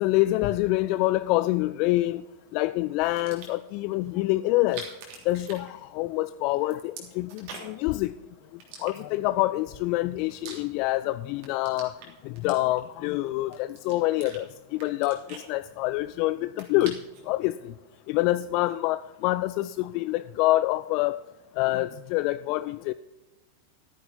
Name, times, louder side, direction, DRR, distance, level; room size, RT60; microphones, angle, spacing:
voice 1, 0.0-2.2 2.5-4.8 5.3-8.1 8.8-11.9 12.2-17.0 17.3-17.7 18.1-21.2 21.6-22.9, left 17 dB, 45° left, 14 dB, 0.3 m, -26 dB
sound 1, 3.0-3.7 4.5-6.2 6.5-7.9 8.6-9.4 9.9-11.0 11.3-13.0 13.5-14.4 14.8-16.1 16.4-17.3, right 5 dB, 45° right, 3.1 m, -44 dB
14.0 x 9.6 x 4.2 m, 1.1 s
figure-of-eight pair, 90°, 0 cm